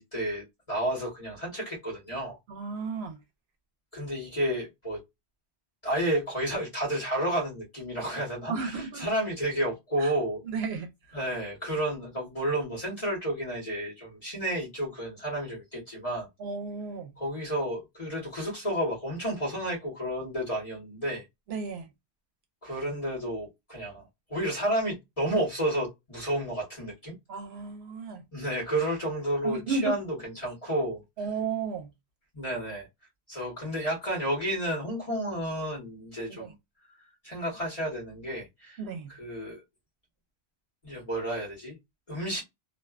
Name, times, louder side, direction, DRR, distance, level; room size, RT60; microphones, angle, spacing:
voice 1, 0.0-2.4 3.9-5.0 5.8-10.4 11.1-16.3 17.2-21.2 22.6-24.0 24.3-27.1 28.3-31.0 32.3-32.9 33.3-36.5 37.2-38.8 39.1-39.6 40.8-41.7 42.1-42.4, right 1 dB, 35° left, 1.2 m, -31 dB
voice 2, 2.5-3.2 8.5-9.0 10.0-10.1 10.5-10.9 16.4-17.1 21.5-21.9 27.3-28.2 29.4-29.9 31.2-31.9 36.3-36.5 38.8-39.1, right 5 dB, 75° right, 0.9 m, -33 dB
2.5 x 2.2 x 2.3 m
omnidirectional pair, 1.1 m